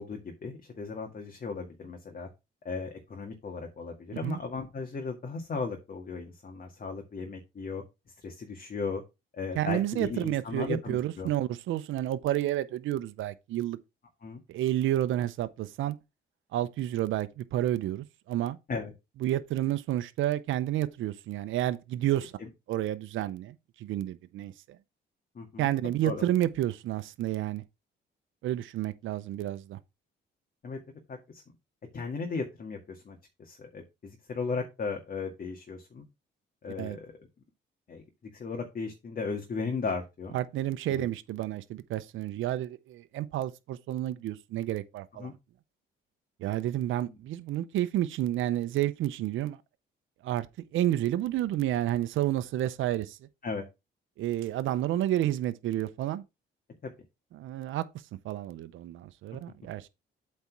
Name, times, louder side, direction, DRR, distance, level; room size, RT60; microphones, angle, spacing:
voice 1, 0.0-2.3 2.6-7.8 8.2-9.0 9.3-11.3 14.2-14.4 18.7-18.9 22.4-22.5 25.4-25.7 26.0-26.3 30.6-30.8 31.1-31.4 31.9-36.1 36.6-37.2 37.9-38.0 38.3-40.4 40.9-41.0 45.2-45.3 47.1-47.2 53.4-53.6 56.8-56.9, left 4 dB, 45° left, 1.9 m, -36 dB
voice 2, 9.6-13.8 14.5-15.9 16.5-18.6 19.2-22.3 22.7-24.5 25.6-27.6 28.4-29.8 36.8-37.0 40.3-45.3 46.4-49.6 50.2-50.5 50.7-53.2 54.2-56.2 57.3-57.8 58.2-59.9, right 13 dB, 80° right, 0.7 m, -30 dB
8.1 x 4.2 x 4.7 m
cardioid pair, 90°, 20 cm